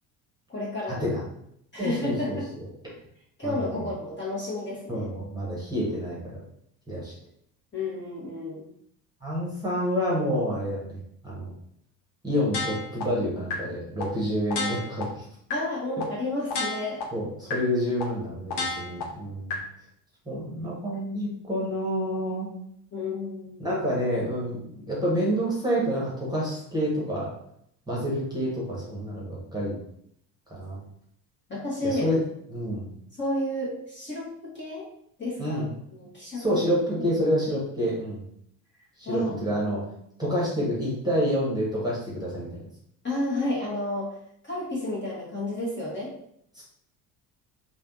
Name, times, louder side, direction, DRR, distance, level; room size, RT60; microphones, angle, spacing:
voice 1, 0.5-1.1 1.7-2.5 3.4-5.1 7.7-8.6 15.5-17.0 20.9-21.0 22.9-23.7 31.5-32.2 33.2-34.9 35.2-35.6 35.9-36.4 37.0-37.1 39.0-39.3 43.0-44.1 44.4-46.1, left 1 dB, 20° left, -6 dB, 1.2 m, -31 dB
voice 2, 1.8-2.4 3.4-3.8 4.9-6.4 6.9-7.1 9.2-11.5 12.2-15.2 17.1-19.6 20.2-22.5 23.6-27.3 27.9-29.8 30.5-30.8 31.8-32.2 32.5-32.9 35.4-35.7 36.3-38.2 39.0-39.8 40.2-42.5 46.5-46.6, equal, 10° right, -5 dB, 1.2 m, -28 dB
sound 1, 12.5-13.0 13.5-13.6 14.0-14.1 14.5-15.0 15.5-15.6 16.0-16.1 16.5-17.0 17.5-17.6 18.0-18.1 18.5-19.0 19.5-19.6, left 3 dB, 55° left, 1.0 m, -30 dB
3.2 x 2.5 x 2.6 m, 0.70 s
figure-of-eight pair, 55°, 49 cm